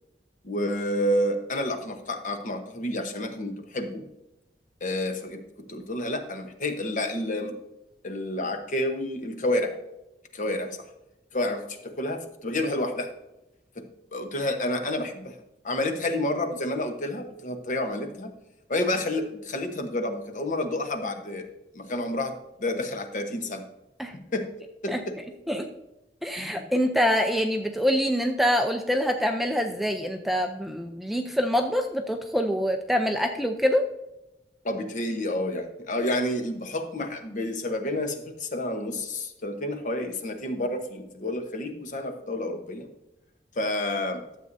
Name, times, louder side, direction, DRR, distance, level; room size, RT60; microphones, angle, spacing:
voice 1, 0.4-4.1 4.8-7.6 8.0-9.7 10.3-10.8 11.3-13.1 13.8-15.3 15.6-18.3 18.7-21.5 21.7-23.7 24.1-24.5 24.8-25.0 26.4-26.7 34.6-42.9 43.6-44.2, left 1 dB, 45° left, 5 dB, 1.0 m, -29 dB
voice 2, 26.2-33.8, equal, ahead, 5 dB, 0.5 m, -25 dB
12.5 x 7.5 x 2.6 m, 0.92 s
head